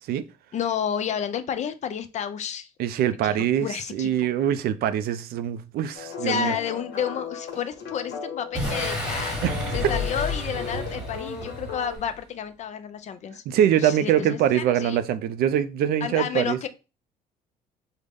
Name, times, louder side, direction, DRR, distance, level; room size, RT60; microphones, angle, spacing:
voice 1, 0.5-2.7 3.2-4.3 6.2-9.4 9.7-13.4 13.8-15.0 16.0-16.7, left 8 dB, 45° left, 0.4 m, -30 dB
voice 2, 2.8-6.5 9.4-9.6 13.5-16.6, right 10 dB, 65° right, 0.4 m, -23 dB
sound 1, 5.9-12.0, left 5 dB, 70° left, 1.1 m, -36 dB
Boom, 8.5-12.2, left 1 dB, 5° right, 1.1 m, -31 dB
3.7 x 2.1 x 3.4 m
cardioid pair, 110°, 17 cm